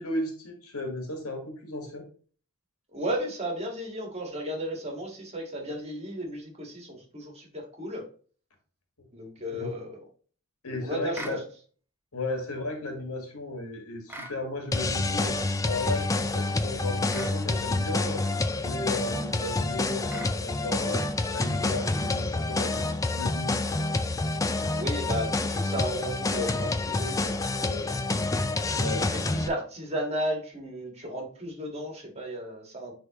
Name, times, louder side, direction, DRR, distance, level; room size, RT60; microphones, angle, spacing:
voice 1, 0.0-2.0 9.5-9.7 10.6-11.4 12.1-18.3 18.6-23.6 28.7-29.2, left 2 dB, 85° left, 3 dB, 1.7 m, -35 dB
voice 2, 2.9-8.0 9.1-10.0 10.8-11.4 24.7-27.9 29.1-32.9, equal, 30° right, 1 dB, 1.7 m, -34 dB
sound 1, 11.1-11.4 14.1-14.4 17.1-17.4 20.1-20.4, right 1 dB, 10° right, 0.7 m, -40 dB
sound 2, 14.7-29.5, left 2 dB, 15° left, 0.4 m, -28 dB
9.9 x 3.5 x 3.0 m, 0.41 s
head